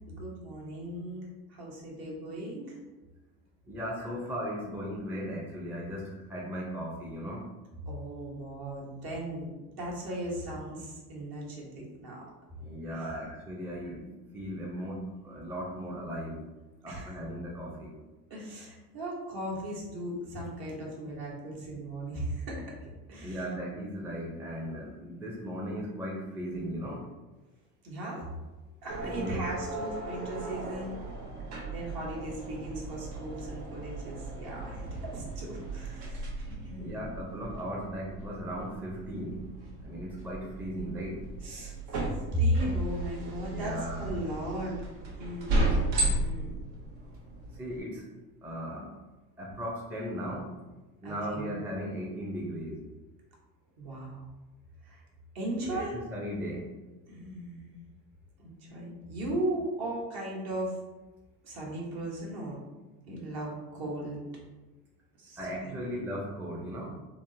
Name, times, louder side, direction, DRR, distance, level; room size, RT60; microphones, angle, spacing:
voice 1, 0.1-2.8 4.0-4.1 7.8-12.2 12.9-13.4 16.9-17.1 18.3-22.7 23.1-23.4 27.8-28.3 28.8-31.0 31.7-36.3 36.6-37.0 41.4-44.8 45.2-46.6 51.0-51.5 53.8-54.2 54.8-55.0 55.3-56.0 57.1-57.7 58.4-60.8 61.4-62.6 63.1-64.2 65.2-65.9, right 1 dB, 50° right, -4 dB, 1.2 m, -36 dB
voice 2, 3.6-7.5 12.6-14.0 14.3-16.4 16.8-17.9 23.2-27.1 29.0-29.4 36.8-39.5 39.8-41.2 43.1-44.1 47.5-48.1 48.4-48.9 49.4-50.5 51.0-52.8 55.6-56.6 65.4-66.9, equal, 5° right, -4 dB, 0.5 m, -37 dB
sound 1, 28.9-47.8, right 2 dB, 70° right, 0.8 m, -35 dB
3.4 x 2.0 x 2.6 m, 1.2 s
hypercardioid pair, 75°, 46 cm